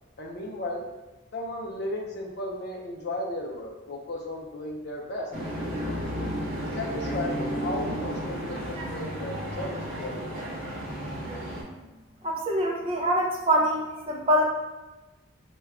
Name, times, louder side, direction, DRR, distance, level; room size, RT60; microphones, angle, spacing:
voice 1, 0.2-0.9 1.3-5.3 5.9-6.4 6.7-10.3, left 1 dB, 55° left, -2 dB, 0.5 m, -35 dB
sound 1, 5.3-11.6, equal, 50° right, 0.9 m, -33 dB
voice 2, 12.2-14.4, equal, 30° right, 0 dB, 0.5 m, -24 dB
3.3 x 2.2 x 3.5 m, 1.1 s
head